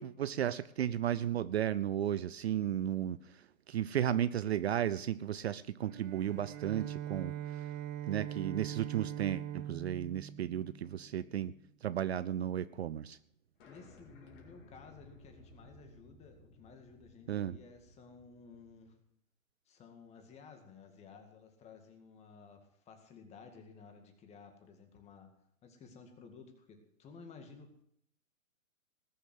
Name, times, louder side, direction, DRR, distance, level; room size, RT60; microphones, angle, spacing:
voice 1, 0.0-7.7 8.1-11.5 11.8-13.2 17.3-17.5, right 10 dB, 50° right, 15 dB, 0.6 m, -34 dB
Bowed string instrument, 5.8-11.3, right 11 dB, 30° right, 1.4 m, -42 dB
sound 1, 13.6-18.9, left 3 dB, 35° left, 4.3 m, -59 dB
voice 2, 13.7-19.0 19.7-25.4 25.6-27.8, left 5 dB, 15° left, 6 dB, 2.0 m, -55 dB
19.0 x 7.1 x 7.6 m, 0.70 s
hypercardioid pair, 140°, 41 cm